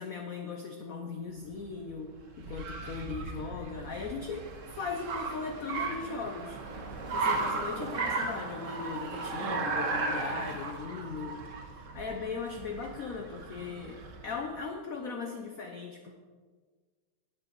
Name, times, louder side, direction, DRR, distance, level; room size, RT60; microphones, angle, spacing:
voice 1, 0.0-4.4 4.7-6.6 7.1-16.1, left 5 dB, 85° left, 3 dB, 0.7 m, -38 dB
Car, 1.4-14.3, right 3 dB, 55° right, 0.9 m, -36 dB
10.0 x 7.8 x 4.0 m, 1.5 s
omnidirectional pair, 2.4 m